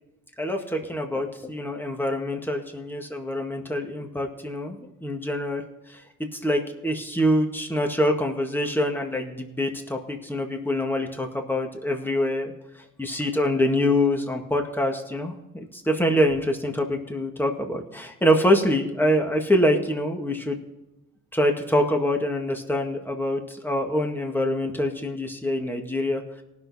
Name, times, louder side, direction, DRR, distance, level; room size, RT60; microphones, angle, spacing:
voice 1, 0.4-5.6 5.9-6.0 6.3-20.6 21.3-26.2, left 1 dB, 5° left, 3 dB, 1.8 m, -25 dB
19.0 x 6.5 x 4.2 m, 0.99 s
cardioid pair, 90°, 30 cm